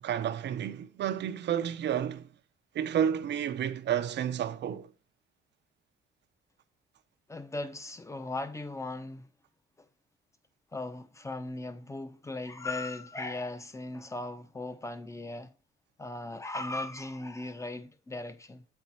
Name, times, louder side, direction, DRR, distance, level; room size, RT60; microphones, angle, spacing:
voice 1, 0.0-2.3 2.7-4.9, right 9 dB, 60° right, 0.7 m, -31 dB
voice 2, 7.3-9.3 10.7-15.5 16.0-18.6, left 2 dB, 15° left, 0.7 m, -38 dB
7.7 x 4.5 x 4.1 m
cardioid pair, 90°, 20 cm